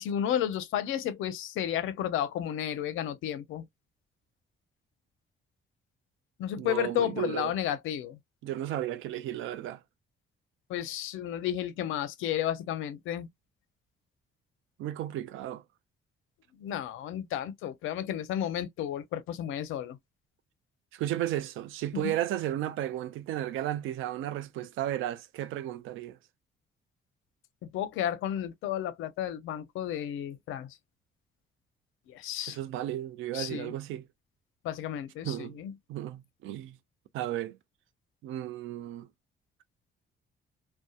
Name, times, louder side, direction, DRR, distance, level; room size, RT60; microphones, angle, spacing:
voice 1, 0.0-3.7 6.4-8.2 10.7-13.3 16.6-20.0 22.0-22.1 27.7-30.8 32.1-32.6 33.3-33.7 34.6-35.7, left 10 dB, 85° left, 0.5 m, -32 dB
voice 2, 6.6-7.5 8.4-9.8 14.8-15.6 20.9-26.2 32.5-34.1 35.2-35.6 35.9-36.8 37.1-37.6 38.2-39.1, right 13 dB, 85° right, 0.4 m, -34 dB
2.7 x 2.1 x 2.2 m
cardioid pair, 90°, 20 cm